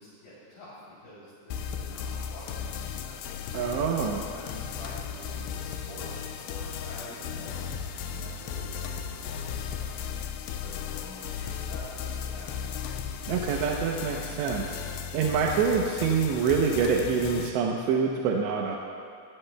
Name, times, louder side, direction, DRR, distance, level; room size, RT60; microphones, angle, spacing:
voice 1, 0.0-3.6 4.1-13.0, left 1 dB, 55° left, -11 dB, 4.9 m, -47 dB
sound 1, 1.5-17.5, left 7 dB, 85° left, 2.8 m, -36 dB
voice 2, 3.5-4.2 13.3-14.8 15.1-18.8, right 6 dB, 90° right, 0 dB, 3.1 m, -26 dB
23.0 x 17.5 x 2.3 m, 2.4 s
omnidirectional pair, 4.9 m